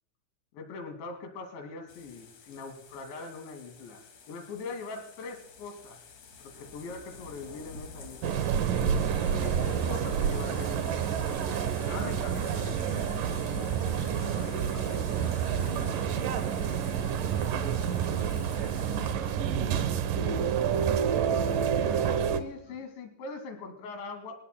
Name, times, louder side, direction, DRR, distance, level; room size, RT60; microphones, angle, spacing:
voice 1, 0.5-6.0 6.4-8.4 9.3-10.8 11.9-13.1 22.3-24.4, left 4 dB, 70° left, 6 dB, 4.4 m, -42 dB
sound 1, 1.9-19.2, left 4 dB, 45° left, 3.1 m, -48 dB
sound 2, 8.2-22.4, right 8 dB, 80° right, 1.9 m, -28 dB
voice 2, 13.9-16.8 17.3-20.0 20.4-22.8, right 2 dB, 30° right, 3 dB, 5.2 m, -46 dB
27.5 x 17.0 x 2.2 m, 0.78 s
omnidirectional pair, 5.5 m